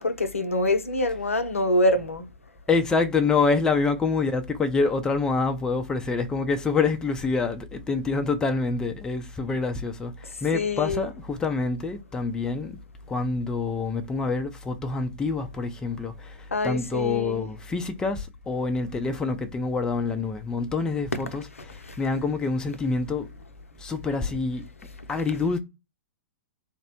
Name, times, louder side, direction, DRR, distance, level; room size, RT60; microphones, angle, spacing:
voice 1, 0.0-2.3 10.5-11.1 16.5-17.5 21.8-22.0, left 1 dB, 85° left, 0.5 m, -25 dB
voice 2, 2.7-12.8 13.1-16.4 16.6-23.3 23.8-24.6 25.1-25.6, left 4 dB, 10° left, 0.3 m, -26 dB
3.4 x 2.0 x 2.7 m
figure-of-eight pair, 110°, 7 cm